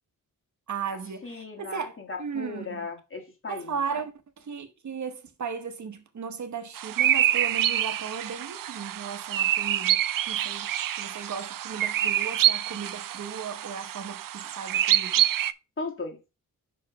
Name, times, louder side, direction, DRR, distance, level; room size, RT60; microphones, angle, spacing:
voice 1, 0.7-2.9 3.5-10.0 10.3-10.7 11.0-15.3, right 6 dB, 55° right, 1.1 m, -36 dB
voice 2, 1.2-4.0 15.8-16.2, left 4 dB, 40° left, 1.7 m, -37 dB
sound 1, 6.8-15.5, right 12 dB, 75° right, 0.5 m, -26 dB
5.9 x 5.0 x 4.6 m
wide cardioid pair, 145°, 34 cm